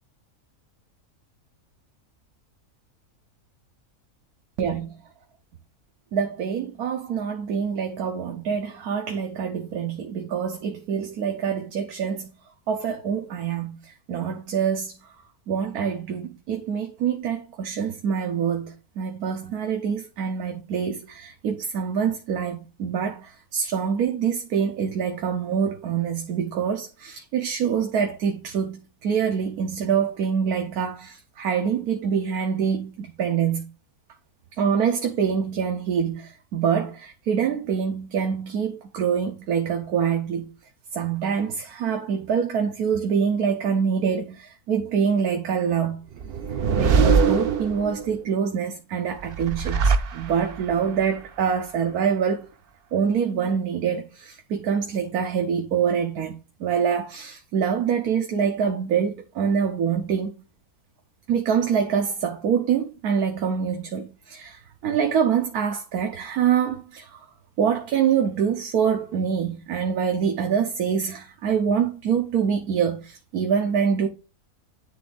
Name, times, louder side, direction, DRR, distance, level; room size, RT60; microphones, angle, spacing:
voice 1, 4.6-4.9 6.1-12.3 12.7-13.8 14.1-15.0 15.5-33.7 34.6-40.5 40.9-46.0 46.8-52.5 52.9-60.3 61.3-67.1 67.6-74.1, right 7 dB, 90° right, 1.4 m, -25 dB
sound 1, 46.2-48.2 49.2-50.7, right 5 dB, 55° right, 0.7 m, -22 dB
10.5 x 3.5 x 3.9 m
omnidirectional pair, 1.5 m